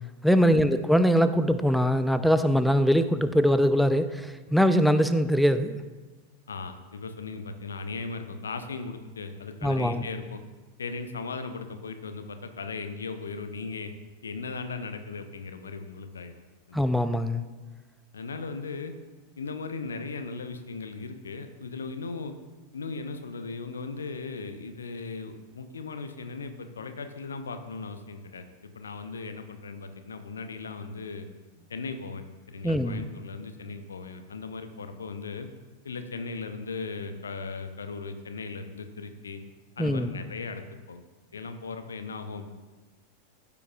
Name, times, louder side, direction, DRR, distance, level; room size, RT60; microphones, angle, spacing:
voice 1, 0.2-5.8 9.6-10.0 16.7-17.4 32.6-33.0 39.8-40.1, equal, ahead, 10 dB, 0.5 m, -22 dB
voice 2, 6.5-10.4 10.8-13.9 14.2-16.4 16.7-16.9 18.1-18.9 19.4-22.4 22.7-28.4 28.7-31.3 31.7-35.5 35.8-39.4 39.8-41.0 41.3-42.5, left 4 dB, 70° left, 8 dB, 0.7 m, -37 dB
14.5 x 6.9 x 2.4 m, 1.2 s
figure-of-eight pair, 90°, 0 cm